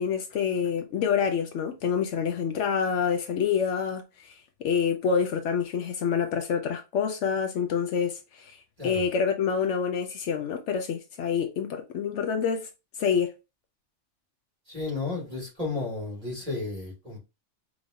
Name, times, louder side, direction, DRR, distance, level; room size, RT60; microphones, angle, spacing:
voice 1, 0.0-12.7 13.0-13.3, left 6 dB, 75° left, 0.9 m, -27 dB
voice 2, 14.7-17.2, left 3 dB, 30° right, 2.3 m, -33 dB
5.0 x 3.0 x 2.6 m
omnidirectional pair, 1.2 m